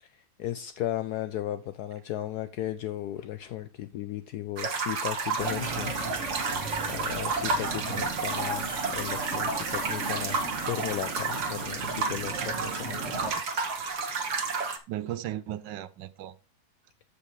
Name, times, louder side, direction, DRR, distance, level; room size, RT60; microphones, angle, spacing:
voice 1, 0.0-6.0 6.3-10.4 10.7-13.2, left 13 dB, 80° left, 0.9 m, -36 dB
sound 1, 4.6-14.8, right 4 dB, 55° right, 1.6 m, -31 dB
sound 2, 5.4-13.3, right 3 dB, 40° right, 1.7 m, -36 dB
voice 2, 7.8-8.1 13.2-13.7 14.9-16.4, right 12 dB, 75° right, 1.1 m, -37 dB
14.5 x 5.4 x 3.2 m
omnidirectional pair, 2.2 m